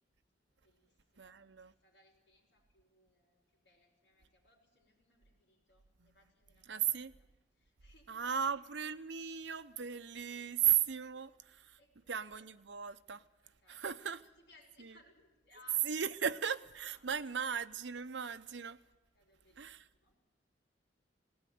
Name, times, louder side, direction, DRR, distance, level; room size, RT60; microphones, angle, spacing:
voice 1, 0.6-8.7 10.3-10.7 11.0-11.3 11.6-12.4 13.4-16.3 16.8-17.5 19.1-20.2, left 2 dB, 70° left, 5.5 m, -67 dB
voice 2, 1.2-1.7 6.7-7.1 8.1-11.8 12.1-13.2 13.7-14.2 15.8-18.8 19.6-19.8, right 8 dB, 85° right, 0.8 m, -36 dB
18.5 x 18.0 x 9.4 m
head